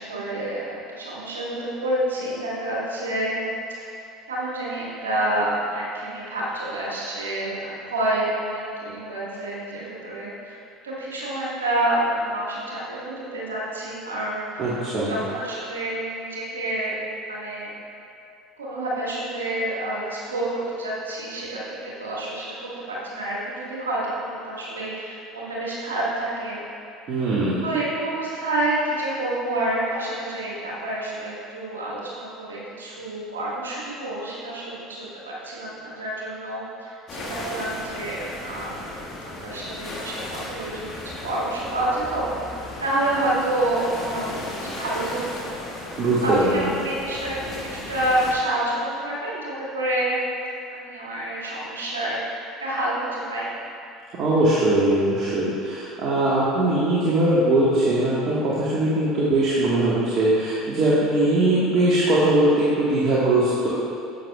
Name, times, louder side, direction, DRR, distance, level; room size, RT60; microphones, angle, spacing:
voice 1, 0.0-3.5 3.9-10.6 10.8-14.7 15.0-16.9 17.3-17.7 18.6-26.6 27.6-38.8 39.2-45.5 46.2-50.2 50.7-53.5, right 1 dB, 85° right, -6 dB, 1.7 m, -28 dB
voice 2, 14.6-15.2 27.1-27.6 46.0-46.7 54.2-63.7, right 1 dB, 50° right, -8 dB, 1.6 m, -21 dB
sound 1, 37.1-48.3, left 1 dB, 40° left, 1.8 m, -36 dB
10.5 x 7.8 x 2.4 m, 2.6 s
hypercardioid pair, 70°, 0 cm